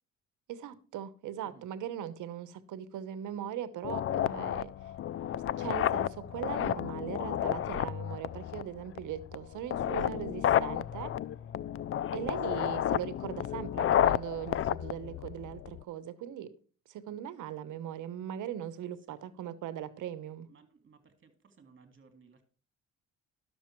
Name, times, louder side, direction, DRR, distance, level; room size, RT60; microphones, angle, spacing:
voice 1, 0.5-4.9 5.6-11.1 12.1-16.5 16.9-20.5, right 10 dB, 80° right, 1.1 m, -40 dB
sound 1, 3.8-15.8, left 11 dB, 45° left, 0.4 m, -31 dB
voice 2, 20.5-22.4, right 5 dB, 40° right, 2.3 m, -60 dB
11.5 x 7.0 x 4.5 m
cardioid pair, 90°, 30 cm